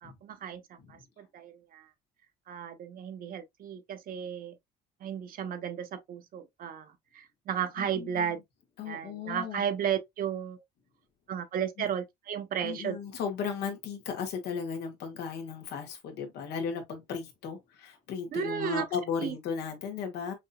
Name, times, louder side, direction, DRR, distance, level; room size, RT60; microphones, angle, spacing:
voice 1, 0.0-1.9 2.5-4.6 5.0-8.4 8.8-10.6 11.3-13.0 18.3-18.9 19.2-19.3, right 8 dB, 55° right, 1.0 m, -34 dB
voice 2, 7.8-8.3 8.8-9.6 12.6-20.3, left 6 dB, 80° left, 1.7 m, -35 dB
6.1 x 2.7 x 2.3 m
cardioid pair, 110°, 17 cm